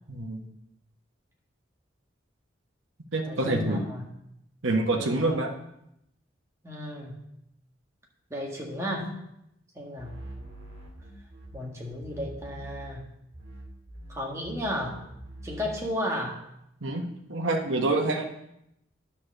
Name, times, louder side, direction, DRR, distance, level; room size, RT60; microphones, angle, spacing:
voice 1, 0.1-0.4 3.1-3.8 4.6-5.5 16.8-18.2, right 2 dB, 90° right, 3 dB, 1.2 m, -27 dB
voice 2, 3.2-4.1 4.9-5.4 6.6-7.2 8.3-9.1 9.7-10.2 11.5-13.1 14.1-15.0 15.4-16.4, left 1 dB, 15° right, -2 dB, 1.7 m, -34 dB
sound 1, 10.0-13.1 13.3-15.9, right 1 dB, 50° right, 2.1 m, -44 dB
10.0 x 4.3 x 6.5 m, 0.80 s
head